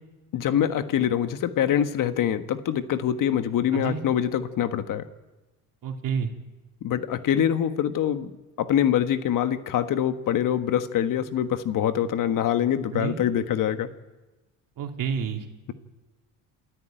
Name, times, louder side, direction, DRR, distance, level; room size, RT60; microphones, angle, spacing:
voice 1, 0.3-5.0 6.8-8.3 8.6-13.9, left 10 dB, 55° left, 10 dB, 1.5 m, -24 dB
voice 2, 5.8-6.3 12.9-13.2 14.8-15.4, right 7 dB, 55° right, 3 dB, 3.0 m, -29 dB
27.5 x 13.5 x 9.1 m, 1.1 s
supercardioid pair, 85°, 38 cm